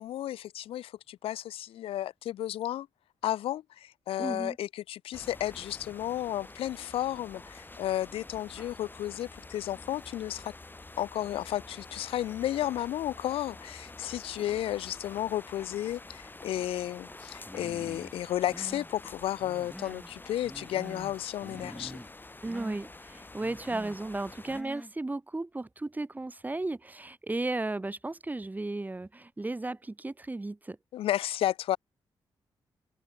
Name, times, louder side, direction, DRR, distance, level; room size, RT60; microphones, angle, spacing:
voice 1, 0.0-2.9 3.2-10.5 11.0-22.0 30.9-31.8, left 12 dB, 90° left, 0.6 m, -33 dB
voice 2, 4.2-4.6 22.4-30.8, right 2 dB, 20° right, 0.9 m, -35 dB
sound 1, 5.1-24.6, left 2 dB, 20° left, 1.6 m, -48 dB
Human voice, 17.5-18.1 18.4-18.9 19.4-20.1 20.4-21.2 21.4-22.1 22.4-22.8 23.4-24.0 24.5-24.9, equal, ahead, 2.7 m, -45 dB
cardioid pair, 70°, 9 cm